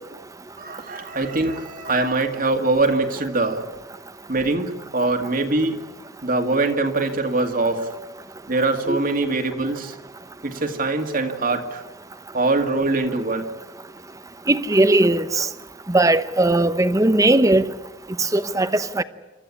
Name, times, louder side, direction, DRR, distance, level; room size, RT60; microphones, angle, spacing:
voice 1, 0.6-3.7 4.3-5.8 6.2-7.9 8.5-10.0 10.4-11.8 12.3-13.5, right 2 dB, 45° right, 2.1 m, -23 dB
voice 2, 14.5-15.5 15.9-17.6 18.2-19.0, right 2 dB, 15° right, 0.9 m, -18 dB
28.0 x 14.0 x 9.9 m
head